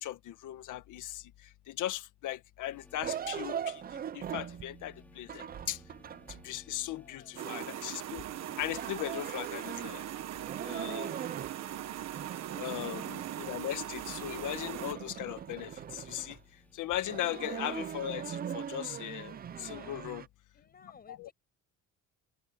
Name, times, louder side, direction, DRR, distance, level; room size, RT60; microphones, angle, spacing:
voice 1, 0.0-1.2 1.7-3.8 4.1-5.8 6.4-8.2 8.6-10.0 10.6-11.1 12.6-16.4 16.8-20.2 21.2-21.3, left 13 dB, 80° left, 1.8 m, -38 dB
sound 1, 2.7-19.7, left 1 dB, 5° left, 5.1 m, -64 dB
sound 2, 3.0-6.5 7.3-10.1 10.3-11.6 11.9-13.7 14.0-16.4 16.9-20.3, right 9 dB, 30° right, 0.5 m, -41 dB
voice 2, 4.8-5.1 6.9-7.4 12.2-12.7 16.8-17.1 19.5-20.1 20.5-21.3, left 6 dB, 30° left, 7.5 m, -59 dB
sound 3, 7.4-14.9, right 12 dB, 60° right, 1.3 m, -40 dB
open air
cardioid pair, 150°, 30 cm